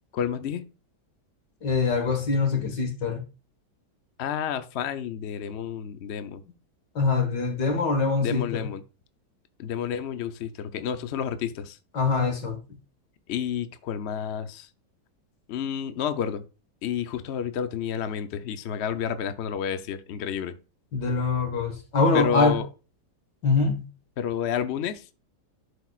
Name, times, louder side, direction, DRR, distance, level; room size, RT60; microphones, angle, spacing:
voice 1, 0.1-0.6 4.2-6.4 8.2-8.8 9.6-11.8 13.3-14.7 15.5-16.4 16.8-20.6 22.1-22.7 24.2-25.2, left 8 dB, 60° left, 0.7 m, -30 dB
voice 2, 1.6-3.2 7.0-8.6 11.9-12.8 20.9-22.6 23.4-23.9, left 4 dB, 80° left, 2.2 m, -24 dB
11.5 x 5.2 x 2.4 m
omnidirectional pair, 1.8 m